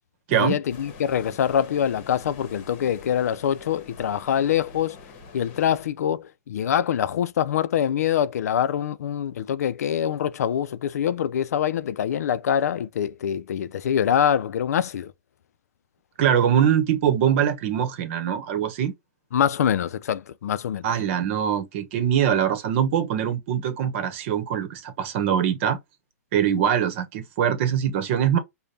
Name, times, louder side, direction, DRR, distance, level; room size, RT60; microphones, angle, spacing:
voice 1, 0.3-5.0 5.3-15.1 19.3-20.9, left 9 dB, 75° left, 0.4 m, -24 dB
sound 1, 0.7-5.9, left 4 dB, 45° left, 1.1 m, -45 dB
voice 2, 16.2-18.9 20.8-25.8 26.3-28.4, right 9 dB, 45° right, 1.0 m, -23 dB
5.1 x 2.2 x 2.7 m
hypercardioid pair, 140°, 9 cm